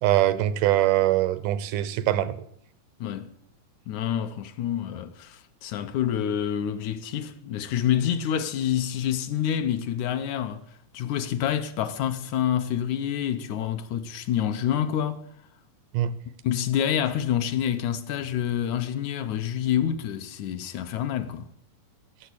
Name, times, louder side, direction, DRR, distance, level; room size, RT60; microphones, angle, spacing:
voice 1, 0.0-2.4 15.9-16.1, right 14 dB, 85° right, 2.4 m, -22 dB
voice 2, 3.0-3.3 3.9-10.6 10.9-15.2 16.4-21.5, left 10 dB, 75° left, 2.2 m, -27 dB
17.0 x 7.3 x 8.5 m
omnidirectional pair, 3.6 m